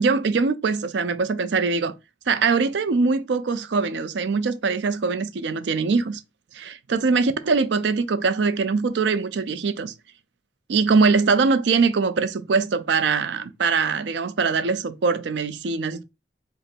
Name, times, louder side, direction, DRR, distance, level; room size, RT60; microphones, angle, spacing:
voice 1, 0.0-1.9 2.3-6.2 6.5-9.9 10.7-16.0, right 4 dB, 75° right, 0.5 m, -22 dB
5.1 x 2.1 x 4.4 m
head